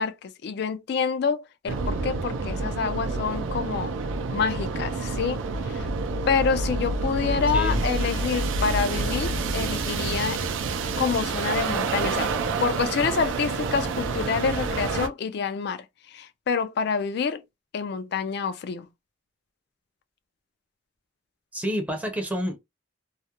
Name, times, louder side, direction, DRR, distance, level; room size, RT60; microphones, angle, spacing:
voice 1, 0.0-3.9 4.3-5.9 6.3-10.4 11.0-12.3 12.6-17.4 17.7-18.9, left 5 dB, 60° left, 0.3 m, -27 dB
sound 1, 1.7-15.1, right 3 dB, 90° right, 0.4 m, -28 dB
voice 2, 7.5-7.8 21.5-22.6, equal, 10° right, 0.5 m, -29 dB
2.3 x 2.0 x 2.8 m
head